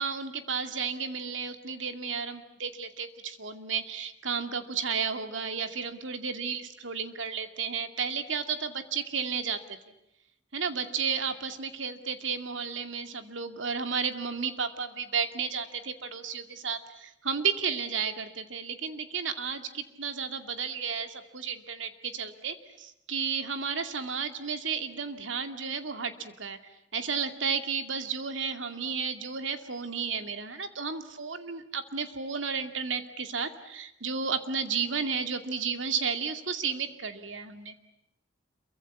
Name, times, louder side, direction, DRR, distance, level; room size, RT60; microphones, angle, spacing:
voice 1, 0.0-9.8 10.5-26.6 26.9-37.8, right 6 dB, 85° right, 8 dB, 2.4 m, -33 dB
28.0 x 24.0 x 8.5 m, 0.82 s
head